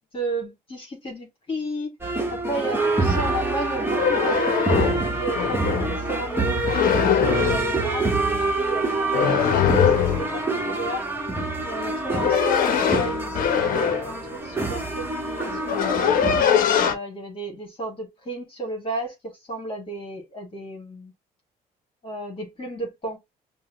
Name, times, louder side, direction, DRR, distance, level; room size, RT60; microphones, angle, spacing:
voice 1, 0.1-2.0 2.3-11.0 11.7-16.1 16.8-21.1 22.0-23.2, right 1 dB, 30° left, 1.7 m, -33 dB
sound 1, 2.0-16.4, right 3 dB, 15° right, 1.2 m, -26 dB
sound 2, 3.8-6.0 6.6-7.7 9.1-10.3 11.8-14.1 15.0-15.1 15.4-17.0, left 8 dB, 55° left, 0.8 m, -22 dB
5.4 x 2.2 x 3.0 m
cardioid pair, 110°, 17 cm